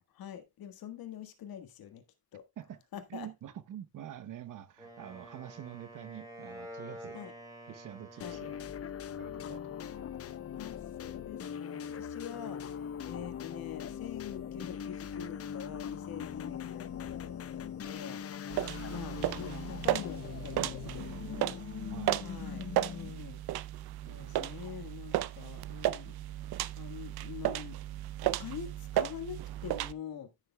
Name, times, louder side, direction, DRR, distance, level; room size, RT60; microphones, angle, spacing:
voice 1, 0.1-2.0 2.3-2.4 2.9-3.3 7.1-7.3 8.2-8.4 10.5-18.2 18.9-21.6 22.2-23.4 24.1-26.2 26.7-27.8 28.2-30.3, left 9 dB, 75° left, 1.6 m, -45 dB
voice 2, 3.1-7.2 7.7-8.6 9.2-10.1 18.8-19.7 21.9-22.2 24.6-24.9, right 10 dB, 60° right, 0.9 m, -47 dB
Wind instrument woodwind instrument, 4.8-9.0, equal, 10° right, 3.3 m, -48 dB
sound 1, 8.2-23.3, left 8 dB, 40° left, 0.7 m, -41 dB
sound 2, 18.5-29.9, right 14 dB, 90° right, 0.6 m, -35 dB
14.0 x 6.6 x 2.2 m
cardioid pair, 150°, 36 cm